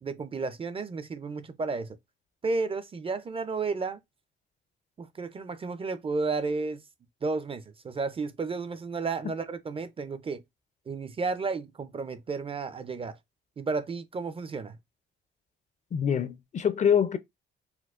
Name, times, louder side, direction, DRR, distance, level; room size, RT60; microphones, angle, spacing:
voice 1, 0.0-2.0 2.4-4.0 5.0-6.8 7.2-10.4 10.9-13.2 13.6-14.8, right 4 dB, 30° right, 0.4 m, -32 dB
voice 2, 15.9-17.2, left 8 dB, 35° left, 0.4 m, -25 dB
4.4 x 2.0 x 2.4 m
cardioid pair, 90°, 20 cm